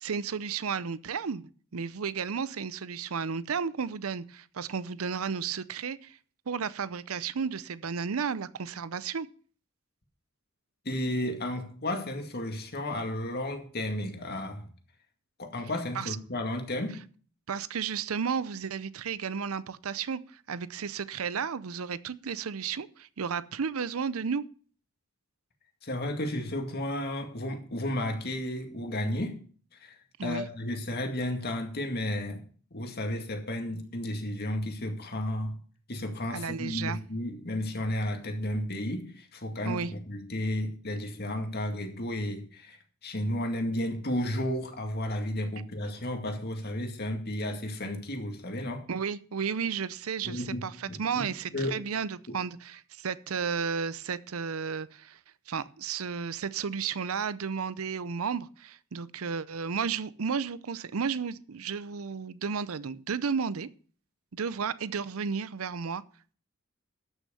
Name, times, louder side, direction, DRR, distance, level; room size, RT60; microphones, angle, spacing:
voice 1, 0.0-1.4 1.7-6.2 6.5-9.3 15.9-16.2 17.5-20.2 20.5-24.4 30.2-30.5 36.3-37.0 39.6-39.9 48.9-55.2 55.5-63.7 64.3-66.0, right 6 dB, 80° right, 0.6 m, -33 dB
voice 2, 10.9-14.7 15.4-17.0 25.8-29.4 29.8-30.0 30.2-32.4 32.7-35.6 35.9-42.8 43.0-48.9 50.2-51.8 52.3-52.4, left 1 dB, 50° left, 2.1 m, -33 dB
13.0 x 6.4 x 6.9 m
head